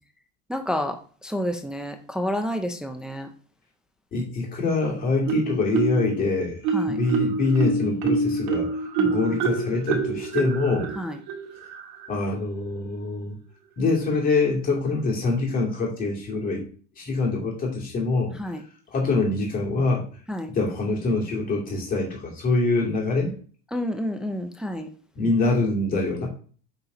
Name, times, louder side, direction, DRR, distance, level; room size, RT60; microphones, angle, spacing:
voice 1, 0.5-1.0 1.2-3.3 6.7-7.0 9.0-9.4 10.9-11.2 18.4-18.6 20.3-20.5 23.7-24.9, equal, ahead, 5 dB, 0.4 m, -29 dB
voice 2, 4.1-6.6 6.9-8.7 9.0-10.9 12.1-13.4 13.8-16.6 17.0-18.4 18.9-20.1 20.5-23.3 25.2-26.3, left 3 dB, 25° left, -1 dB, 2.5 m, -24 dB
Marimba xylophone, 5.3-6.2 6.6-12.1, right 4 dB, 65° right, 1.9 m, -26 dB
8.0 x 4.3 x 5.0 m, 0.43 s
cardioid pair, 165°, 34 cm